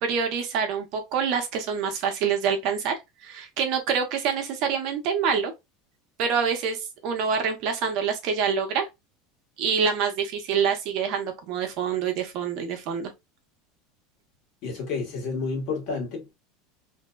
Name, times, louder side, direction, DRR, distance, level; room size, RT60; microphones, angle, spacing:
voice 1, 0.0-2.9 3.2-5.5 6.2-8.9 9.6-13.1, right 6 dB, 55° right, 0.7 m, -26 dB
voice 2, 14.6-16.3, left 4 dB, 50° left, 1.2 m, -30 dB
2.6 x 2.1 x 2.2 m
supercardioid pair, 140°, 0 cm